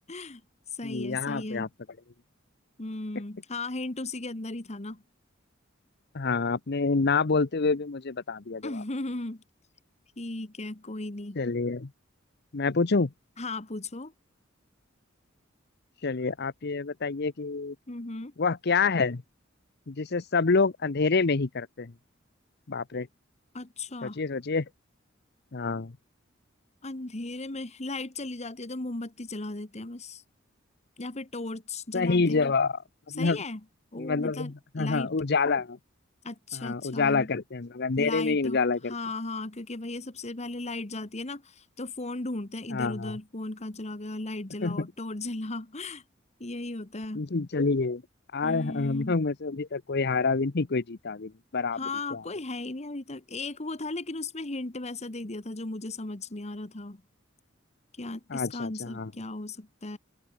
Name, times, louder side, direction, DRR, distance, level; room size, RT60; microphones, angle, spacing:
voice 1, 0.1-0.4 0.8-1.7 2.8-5.0 8.6-9.4 10.2-11.4 13.4-14.1 17.9-18.3 23.5-24.2 26.8-30.2 31.0-32.5 33.2-33.6 33.9-35.1 36.2-37.3 38.0-38.6 38.8-46.0 46.4-47.2 48.4-49.1 51.8-57.0 58.0-60.0, left 2 dB, 35° left, 1.5 m, -36 dB
voice 2, 0.8-1.7 6.1-8.8 11.4-11.9 12.5-13.1 16.0-17.7 18.4-19.2 19.9-21.9 22.7-23.1 24.0-24.7 25.5-25.9 31.9-32.8 33.1-33.4 34.0-35.8 36.5-38.9 42.7-43.1 44.6-44.9 47.1-48.0 48.3-51.8 52.1-52.2 58.3-59.1, left 4 dB, 55° left, 0.8 m, -27 dB
open air
head